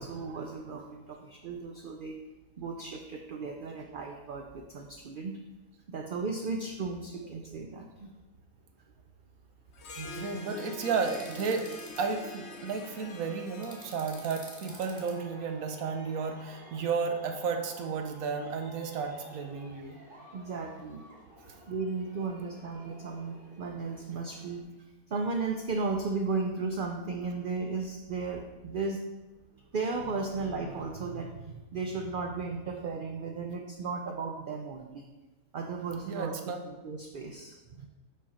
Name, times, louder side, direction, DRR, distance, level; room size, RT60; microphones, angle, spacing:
voice 1, 0.0-2.2 2.6-5.3 5.9-8.1 10.3-10.4 20.3-21.0 21.7-24.6 25.1-29.0 29.7-35.1 35.5-36.3 36.6-37.9, right 4 dB, 65° right, 2 dB, 0.5 m, -35 dB
Harp, 9.7-15.5, left 3 dB, 60° left, 1.0 m, -46 dB
voice 2, 10.0-11.7 12.0-20.0 36.1-36.6, right 5 dB, 90° right, 5 dB, 1.2 m, -33 dB
sound 1, 11.0-12.0 13.6-15.1, right 1 dB, 15° right, 1.1 m, -48 dB
Aircraft, 13.0-24.6, equal, 40° right, 1.9 m, -53 dB
5.5 x 5.0 x 4.2 m, 1.2 s
omnidirectional pair, 1.4 m